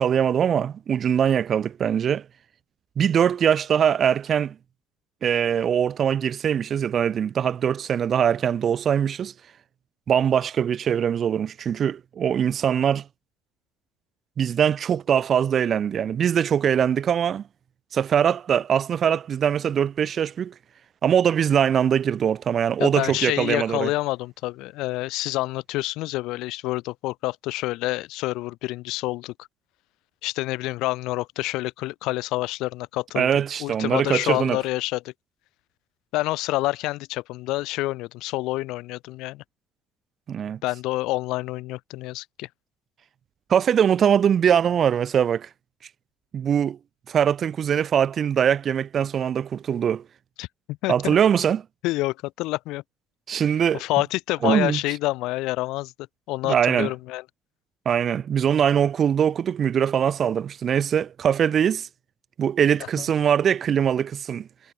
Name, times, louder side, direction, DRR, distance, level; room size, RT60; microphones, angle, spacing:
voice 1, 0.0-2.2 3.0-4.5 5.2-9.3 10.1-13.0 14.4-17.4 17.9-20.5 21.0-23.9 33.1-34.6 40.3-40.6 43.5-45.5 46.3-46.8 47.1-50.0 50.9-51.6 53.3-53.8 54.4-54.8 56.4-56.9 57.8-61.9 62.4-64.5, right 8 dB, 40° right, 1.3 m, -22 dB
voice 2, 22.8-29.5 30.2-33.3 33.6-35.1 36.1-39.4 40.6-42.5 50.4-51.2 51.8-52.8 53.3-53.4 53.7-55.9 56.3-57.2, left 19 dB, 80° left, 1.2 m, -28 dB
cardioid pair, 125°, 0 cm